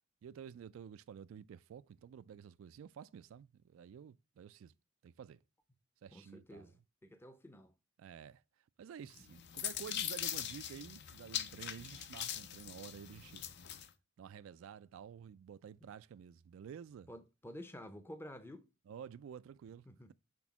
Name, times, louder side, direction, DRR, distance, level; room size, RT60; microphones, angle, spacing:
voice 1, 0.2-4.7 5.0-5.4 6.0-6.7 8.0-8.4 8.8-13.4 14.2-17.1 18.9-20.1, right 8 dB, 80° right, 0.3 m, -51 dB
voice 2, 6.1-7.7 17.1-18.7 19.9-20.1, left 1 dB, 10° left, 0.5 m, -51 dB
sound 1, 9.1-13.9, left 10 dB, 55° left, 0.5 m, -42 dB
6.1 x 3.6 x 5.9 m
head